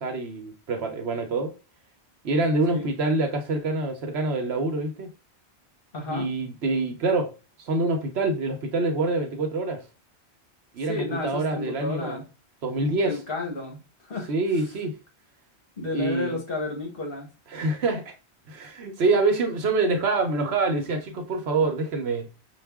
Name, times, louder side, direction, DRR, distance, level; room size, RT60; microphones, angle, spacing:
voice 1, 0.0-1.5 2.2-5.1 6.1-9.8 10.7-12.2 12.6-13.2 14.3-15.0 15.9-16.4 17.5-18.1 18.5-22.3, right 3 dB, 75° right, 1.1 m, -26 dB
voice 2, 5.9-6.3 10.9-12.2 13.0-14.3 15.8-17.3, left 2 dB, 60° left, 1.5 m, -32 dB
5.4 x 2.4 x 3.5 m
omnidirectional pair, 1.1 m